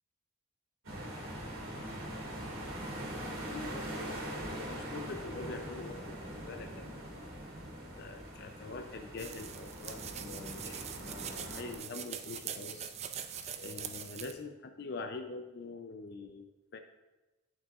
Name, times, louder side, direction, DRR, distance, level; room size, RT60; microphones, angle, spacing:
sound 1, 0.8-11.7, right 1 dB, 85° right, 2.5 m, -42 dB
voice 1, 3.1-6.7 8.0-13.0 13.6-16.8, left 3 dB, 50° left, 6 dB, 0.4 m, -45 dB
sound 2, 9.2-14.3, right 8 dB, 30° right, 0.4 m, -43 dB
11.0 x 6.0 x 2.4 m, 1.1 s
head